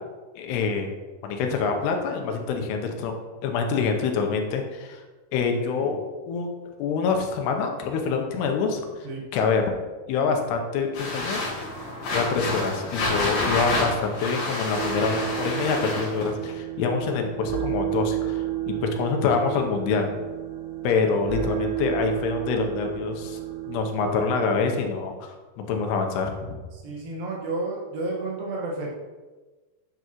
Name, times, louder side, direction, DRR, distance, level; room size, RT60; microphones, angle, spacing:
voice 1, 0.4-0.9 1.2-3.1 3.4-5.0 5.3-6.0 6.3-8.8 9.3-9.6 10.1-11.4 12.1-20.1 20.8-23.4 23.7-26.6, left 5 dB, 90° left, 4 dB, 3.0 m, -26 dB
sound 1, 10.9-16.3, left 2 dB, 65° left, 3.6 m, -29 dB
sound 2, 14.8-24.8, right 13 dB, 85° right, 2.8 m, -32 dB
voice 2, 26.7-28.9, right 2 dB, 65° right, -3 dB, 3.1 m, -31 dB
10.0 x 6.9 x 3.1 m, 1.3 s
omnidirectional pair, 4.6 m